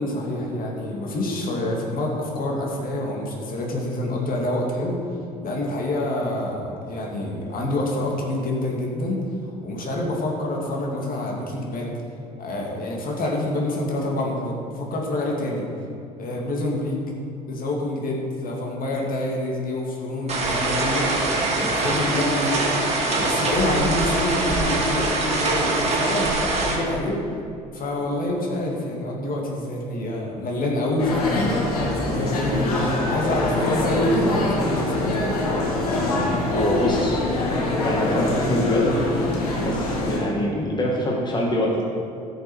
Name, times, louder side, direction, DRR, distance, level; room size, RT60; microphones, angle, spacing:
voice 1, 0.0-5.0 5.4-11.9 12.4-15.7 16.2-17.0 17.5-22.8 23.2-27.2 27.7-31.6 32.0-35.5, left 1 dB, 50° left, -1 dB, 2.5 m, -27 dB
sound 1, 20.3-26.8, right 2 dB, 35° right, 2.6 m, -23 dB
sound 2, 31.0-40.2, left 2 dB, 85° left, 1.9 m, -24 dB
voice 2, 32.4-32.7 36.5-37.2 37.8-38.9 39.6-41.8, left 1 dB, 25° left, -2 dB, 2.0 m, -25 dB
15.0 x 6.7 x 4.6 m, 2.5 s
hypercardioid pair, 55°, 19 cm